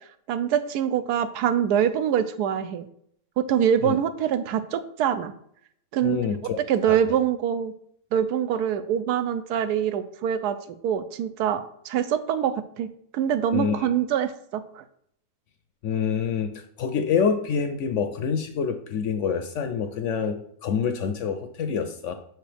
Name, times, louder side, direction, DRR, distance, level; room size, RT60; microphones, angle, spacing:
voice 1, 0.3-2.9 3.4-5.3 5.9-6.2 6.7-7.7 8.1-10.6 10.8-14.8, right 9 dB, 90° right, 11 dB, 1.1 m, -24 dB
voice 2, 6.0-6.6 6.8-7.0 13.5-13.9 15.8-22.1, left 6 dB, 70° left, 8 dB, 0.7 m, -26 dB
6.3 x 4.4 x 3.4 m, 0.69 s
omnidirectional pair, 1.6 m